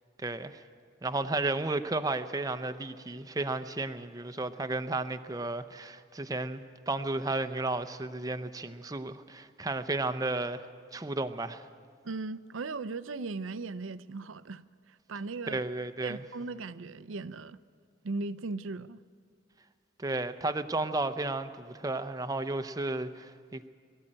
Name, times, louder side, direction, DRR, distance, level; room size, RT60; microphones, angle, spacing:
voice 1, 0.2-0.6 1.0-10.6 10.9-11.6 15.5-16.2 20.0-23.7, right 2 dB, 20° right, 0.6 m, -33 dB
voice 2, 12.0-14.6 14.9-15.6 16.0-17.6 18.0-19.0, right 3 dB, 90° right, 0.6 m, -38 dB
22.0 x 13.5 x 8.8 m
head